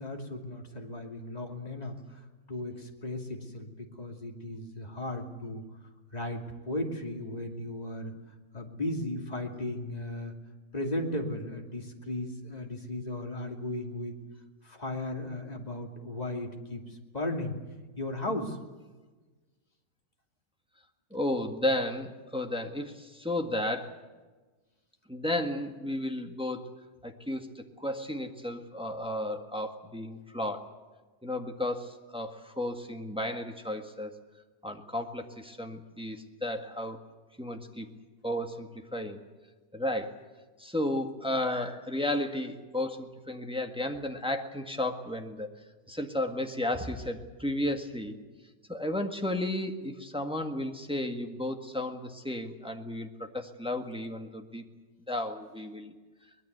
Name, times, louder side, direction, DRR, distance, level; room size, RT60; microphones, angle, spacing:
voice 1, 0.0-5.7 6.1-8.2 8.5-10.3 10.7-14.2 14.6-17.5 18.0-18.6, left 1 dB, 20° left, 2 dB, 2.7 m, -36 dB
voice 2, 21.1-24.0 25.1-26.7 27.0-30.7 31.2-34.2 34.6-37.0 37.4-38.0 38.2-39.2 39.7-40.2 40.6-45.5 45.9-48.2 48.7-54.6 55.1-55.9, left 1 dB, 5° right, 4 dB, 1.5 m, -33 dB
23.5 x 20.5 x 8.0 m, 1.3 s
omnidirectional pair, 1.9 m